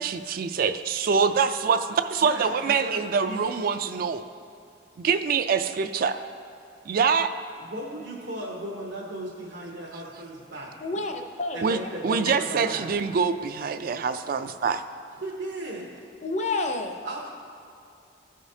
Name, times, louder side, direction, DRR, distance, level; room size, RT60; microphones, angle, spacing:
voice 1, 0.0-4.2 5.0-6.2 6.9-7.3 11.6-11.8 12.0-14.8, right 6 dB, 55° right, 10 dB, 0.3 m, -25 dB
voice 2, 2.2-3.0 3.2-3.4 7.6-10.7 11.5-12.9 15.2-15.9 17.0-17.3, right 1 dB, 80° right, -5 dB, 1.0 m, -36 dB
voice 3, 10.8-11.9 12.3-12.7 16.2-17.0, left 3 dB, 40° left, 5 dB, 0.6 m, -30 dB
14.5 x 5.0 x 2.7 m, 2.6 s
head